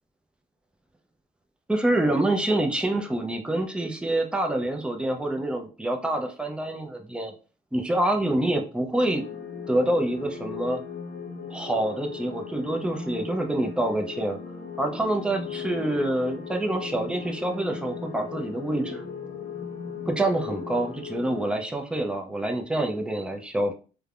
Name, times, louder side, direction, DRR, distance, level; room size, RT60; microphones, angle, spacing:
voice 1, 1.7-7.3 7.7-9.2 9.7-10.8 11.5-14.4 14.8-19.0 20.1-23.7, right 1 dB, 5° right, 3 dB, 0.4 m, -26 dB
sound 1, 9.0-21.5, left 6 dB, 65° left, 0.6 m, -37 dB
3.2 x 2.1 x 2.4 m, 0.36 s
cardioid pair, 110°, 17 cm